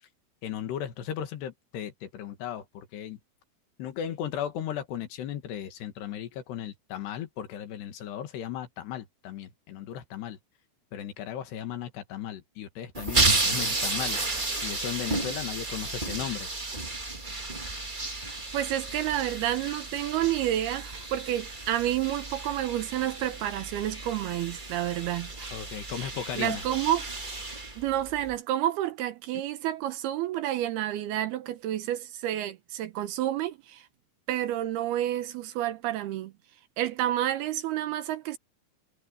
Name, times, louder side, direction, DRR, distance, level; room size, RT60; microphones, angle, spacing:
voice 1, 0.4-3.2 3.8-10.4 10.9-14.2 14.6-16.5 25.5-26.6, left 10 dB, 75° left, 3.9 m, -36 dB
sound 1, 12.9-28.3, right 2 dB, 55° right, 0.5 m, -32 dB
sound 2, 13.4-15.3, right 5 dB, 35° right, 3.4 m, -43 dB
voice 2, 18.5-25.5 25.9-27.1 27.8-33.9 34.3-36.3 36.8-38.4, right 13 dB, 75° right, 2.7 m, -30 dB
omnidirectional pair, 4.9 m